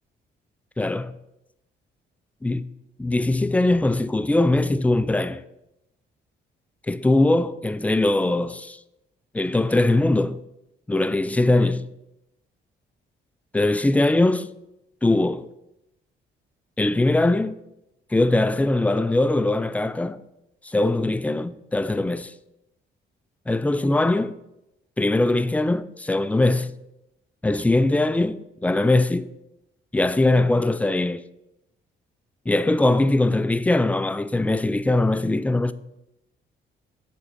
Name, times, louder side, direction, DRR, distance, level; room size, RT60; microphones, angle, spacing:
voice 1, 0.8-1.1 2.4-2.6 3.0-5.4 6.9-8.8 9.3-10.4 10.9-11.9 13.5-14.5 15.0-15.5 16.8-17.5 18.1-20.2 20.6-22.3 23.5-24.3 25.0-26.7 27.4-29.3 29.9-31.2 32.5-35.7, left 2 dB, 5° left, 0.3 m, -21 dB
8.0 x 3.6 x 5.6 m
cardioid pair, 90°, 20 cm